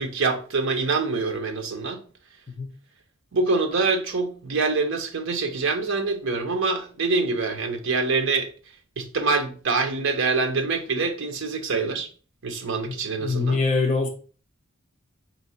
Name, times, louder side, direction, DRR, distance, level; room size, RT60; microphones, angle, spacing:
voice 1, 0.0-2.0 3.3-8.5 9.0-12.1 12.4-13.6, right 4 dB, 65° right, 0.7 m, -25 dB
voice 2, 12.9-14.1, left 4 dB, 35° left, 0.8 m, -24 dB
4.4 x 2.8 x 4.1 m
head